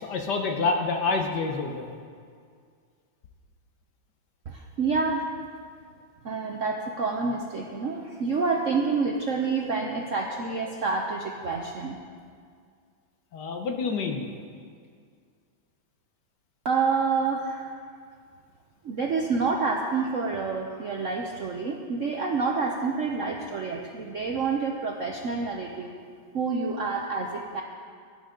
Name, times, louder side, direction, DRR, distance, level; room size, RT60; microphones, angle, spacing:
voice 1, 0.0-1.9 13.3-14.3, left 4 dB, 60° left, 3 dB, 1.4 m, -27 dB
voice 2, 4.5-5.3 6.2-12.0 16.6-17.7 18.8-25.9 26.3-27.6, right 4 dB, 60° right, 1 dB, 0.8 m, -28 dB
17.0 x 11.5 x 3.8 m, 2.1 s
omnidirectional pair, 2.3 m